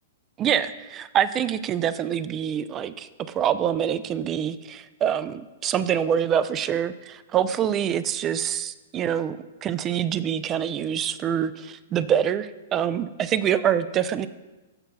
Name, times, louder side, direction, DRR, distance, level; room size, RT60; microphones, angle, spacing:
voice 1, 0.4-14.3, right 9 dB, 25° right, 14 dB, 0.3 m, -25 dB
14.5 x 5.6 x 2.3 m, 1.1 s
hypercardioid pair, 120°, 0 cm